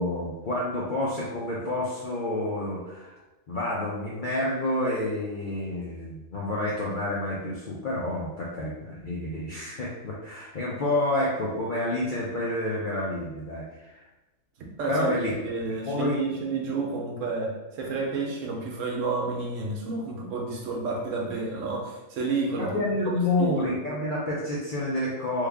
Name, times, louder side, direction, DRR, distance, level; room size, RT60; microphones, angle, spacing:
voice 1, 0.0-3.2 3.5-14.1 14.9-15.3 15.9-16.2 22.6-25.5, left 1 dB, 60° left, -5 dB, 0.5 m, -29 dB
voice 2, 14.8-22.8 23.4-23.8, right 3 dB, 70° right, 0 dB, 0.9 m, -30 dB
3.2 x 2.3 x 3.4 m, 1.1 s
omnidirectional pair, 1.5 m